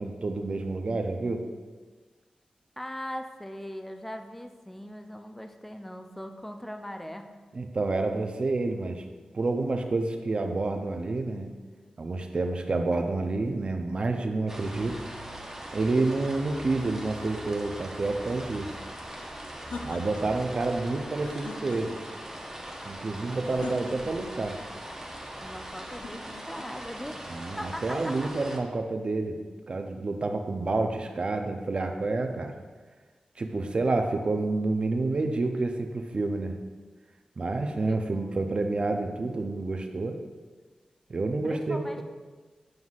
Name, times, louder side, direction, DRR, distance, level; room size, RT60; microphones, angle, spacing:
voice 1, 0.0-1.4 7.5-9.0 9.3-11.5 12.0-15.0 15.7-18.7 19.8-21.9 22.9-24.6 27.3-29.4 29.7-32.6 33.4-36.6 37.4-40.2 41.1-42.0, right 3 dB, 45° right, 5 dB, 0.5 m, -29 dB
voice 2, 2.8-7.3 23.2-23.8 25.4-27.2 27.6-28.3 37.9-38.4 41.4-42.0, equal, 10° left, 5 dB, 0.4 m, -40 dB
sound 1, 14.5-28.6, right 1 dB, 15° right, 0.8 m, -41 dB
sound 2, 19.1-20.5 21.1-22.2 23.4-24.4 25.8-26.7, left 3 dB, 90° left, 0.4 m, -42 dB
7.8 x 5.5 x 2.4 m, 1.4 s
wide cardioid pair, 100°, 2 cm